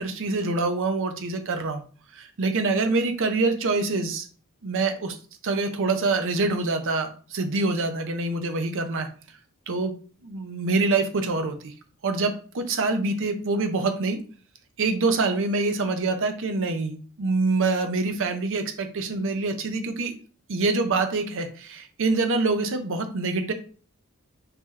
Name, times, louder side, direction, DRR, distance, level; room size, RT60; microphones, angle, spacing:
voice 1, 0.0-1.8 2.1-4.3 4.6-5.2 5.4-9.1 9.7-9.9 10.2-11.7 12.0-14.2 14.8-20.1 20.5-23.5, right 3 dB, 60° right, 7 dB, 0.6 m, -25 dB
3.0 x 2.8 x 3.7 m, 0.40 s
head